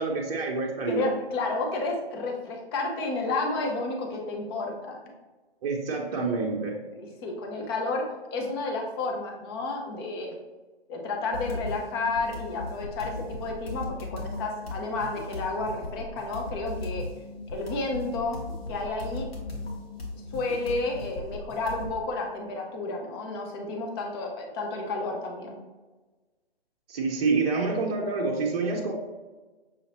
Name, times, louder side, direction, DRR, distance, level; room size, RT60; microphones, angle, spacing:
voice 1, 0.0-1.1 5.6-6.7 26.9-28.9, right 4 dB, 40° right, -1 dB, 0.7 m, -27 dB
voice 2, 0.9-5.0 6.9-8.0 8.3-10.4 10.9-17.0 17.5-18.4 18.7-19.3 20.3-25.6, left 3 dB, 25° left, 1 dB, 0.7 m, -31 dB
sound 1, 11.3-22.0, left 2 dB, 70° left, 1.5 m, -37 dB
6.3 x 2.7 x 2.9 m, 1.3 s
figure-of-eight pair, 130°, 32 cm